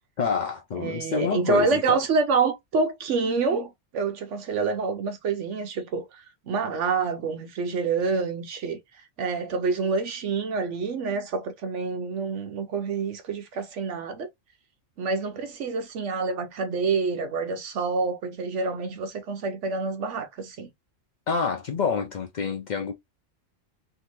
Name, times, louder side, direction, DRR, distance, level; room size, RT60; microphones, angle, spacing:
voice 1, 0.2-2.0 21.3-22.9, left 6 dB, 70° left, 0.4 m, -27 dB
voice 2, 0.7-8.8 9.2-14.3 15.0-20.7, right 4 dB, 70° right, 0.9 m, -27 dB
3.5 x 2.6 x 2.9 m
omnidirectional pair, 1.4 m